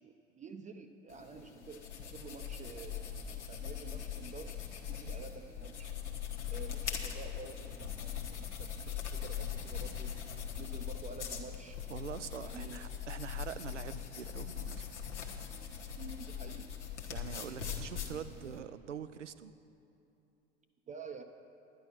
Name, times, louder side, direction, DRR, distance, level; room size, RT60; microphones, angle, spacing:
voice 1, 0.0-3.1 3.5-5.9 6.5-10.1 10.6-11.8 12.4-12.9 15.9-16.7 20.9-21.2, right 5 dB, 20° right, 5 dB, 0.6 m, -49 dB
sound 1, 1.1-18.6, left 8 dB, 80° left, 1.3 m, -41 dB
voice 2, 11.9-14.8 17.1-19.5, right 8 dB, 85° right, 13 dB, 0.5 m, -44 dB
10.5 x 10.5 x 5.8 m, 2.8 s
figure-of-eight pair, 80°, 35 cm